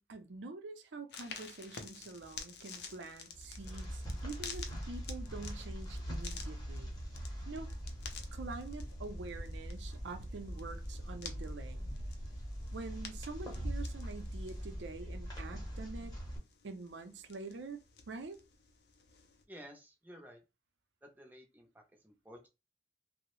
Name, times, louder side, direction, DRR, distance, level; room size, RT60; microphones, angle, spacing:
voice 1, 0.0-7.0 7.5-7.7 8.3-11.9 12.7-16.1 16.6-17.8 18.1-18.4, right 3 dB, 75° right, 0.5 m, -46 dB
sound 1, 1.1-19.4, left 5 dB, 60° left, 0.5 m, -52 dB
sound 2, 3.3-16.4, equal, 20° left, 0.8 m, -42 dB
voice 2, 19.5-20.4 21.0-21.7 22.0-22.5, equal, 10° right, 0.5 m, -53 dB
2.7 x 2.0 x 3.0 m
head